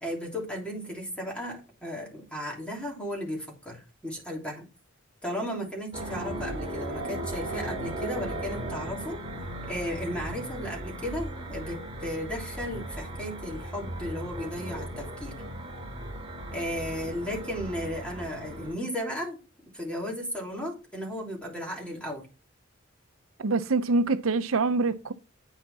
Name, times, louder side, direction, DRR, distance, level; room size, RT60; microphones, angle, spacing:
voice 1, 0.0-4.7 5.2-9.2 9.6-15.4 16.5-19.4 19.7-22.3, equal, 5° left, 3.2 m, -35 dB
sound 1, 5.9-18.7, right 1 dB, 25° right, 2.4 m, -37 dB
voice 2, 23.4-25.1, right 3 dB, 80° right, 0.7 m, -25 dB
9.2 x 5.7 x 4.1 m
head